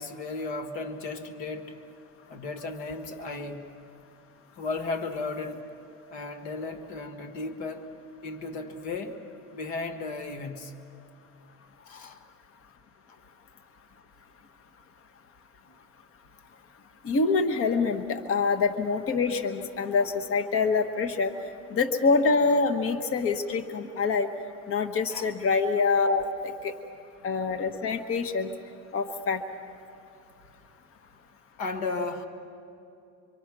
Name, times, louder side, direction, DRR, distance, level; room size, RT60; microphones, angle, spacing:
voice 1, 0.0-1.8 2.3-3.6 4.6-5.6 6.1-7.9 8.2-9.2 9.5-10.7 11.9-12.2 21.3-21.4 25.1-25.3 31.6-32.3, left 3 dB, 85° left, 7 dB, 1.8 m, -35 dB
voice 2, 17.0-21.3 21.7-24.3 24.7-26.7 27.2-28.5 28.9-29.4, left 4 dB, 45° left, 8 dB, 1.3 m, -25 dB
25.0 x 24.5 x 6.1 m, 2.7 s
supercardioid pair, 100°, 31 cm